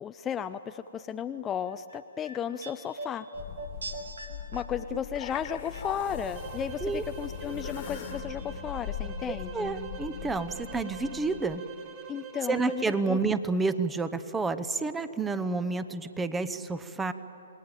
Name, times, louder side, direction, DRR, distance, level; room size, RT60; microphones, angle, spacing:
voice 1, 0.0-3.3 4.5-9.7 12.1-12.8 13.0-13.2, left 8 dB, 20° left, 9 dB, 0.5 m, -34 dB
sound 1, 1.7-6.9 7.2-8.1 8.4-8.5, right 2 dB, 80° right, 2.7 m, -43 dB
sound 2, 3.3-11.6, left 9 dB, 45° left, 1.6 m, -40 dB
sound 3, 6.3-13.1, right 7 dB, 35° right, 2.5 m, -45 dB
voice 2, 9.3-11.6 12.5-17.1, right 3 dB, 10° right, 13 dB, 0.9 m, -29 dB
27.5 x 20.0 x 9.0 m, 2.9 s
hypercardioid pair, 130°, 0 cm